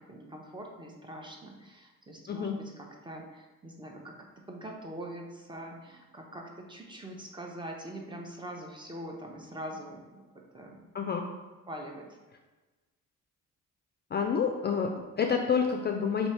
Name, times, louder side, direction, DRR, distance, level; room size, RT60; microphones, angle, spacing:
voice 1, 0.0-4.1 4.5-10.2 10.5-10.8 11.7-12.1, right 1 dB, 15° right, 1 dB, 0.7 m, -43 dB
voice 2, 10.9-11.3 14.1-16.3, left 6 dB, 35° left, 3 dB, 0.4 m, -28 dB
3.1 x 2.8 x 4.3 m, 1.2 s
cardioid pair, 90°, 30 cm